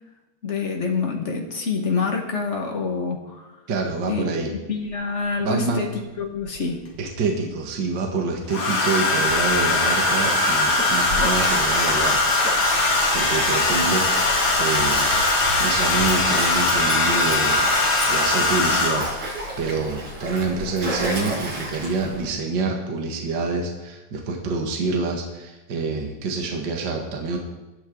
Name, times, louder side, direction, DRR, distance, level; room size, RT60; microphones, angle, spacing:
voice 1, 0.4-3.5 4.1-4.3 4.7-5.9 6.2-6.8, left 5 dB, 30° left, 1 dB, 1.6 m, -26 dB
voice 2, 3.7-4.5 5.4-5.8 7.0-15.1 15.6-17.7 18.0-27.4, right 3 dB, 40° right, 1 dB, 2.1 m, -27 dB
Domestic sounds home sounds, 4.9-5.0 6.4-7.1 8.5-19.3 20.5-20.8 21.0-21.4, left 2 dB, 45° left, 3.3 m, -21 dB
Stream, 9.2-22.3, right 1 dB, 75° right, 7.0 m, -32 dB
19.0 x 12.0 x 4.0 m, 1.1 s
omnidirectional pair, 3.4 m